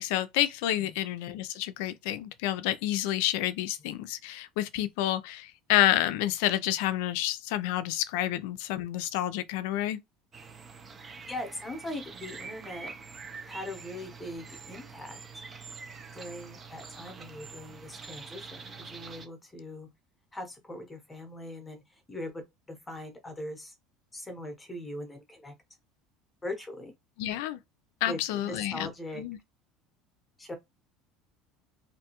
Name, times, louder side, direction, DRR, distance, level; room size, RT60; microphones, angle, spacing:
voice 1, 0.0-10.0 27.2-27.6 28.0-28.9 29.2-29.4, left 13 dB, 75° left, 0.3 m, -29 dB
sound 1, 10.3-19.3, right 5 dB, 25° right, 0.5 m, -45 dB
voice 2, 11.3-12.9 13.5-15.2 16.1-19.9 20.3-22.4 22.7-23.7 24.1-25.5 26.4-26.9 28.1-29.2 30.4-30.5, left 1 dB, 10° left, 0.8 m, -40 dB
2.5 x 2.2 x 2.9 m
cardioid pair, 135°, 0 cm